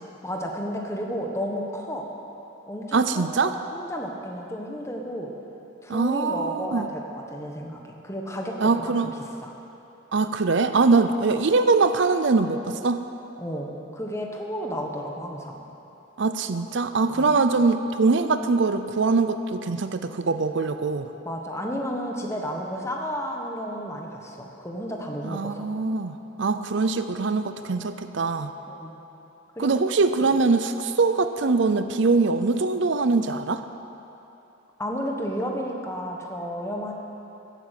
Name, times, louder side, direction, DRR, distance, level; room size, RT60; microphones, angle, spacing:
voice 1, 0.2-2.1 2.7-5.3 5.8-8.9 9.4-9.5 13.4-15.6 17.1-17.3 21.2-25.7 28.7-28.9 29.6-29.7 34.8-36.9, equal, 15° left, 1 dB, 1.3 m, -32 dB
voice 2, 2.9-3.6 5.9-6.9 8.6-9.1 10.1-13.1 16.2-21.1 25.2-28.5 29.6-33.6, right 4 dB, 60° right, 10 dB, 0.5 m, -23 dB
14.5 x 9.1 x 8.3 m, 3.0 s
head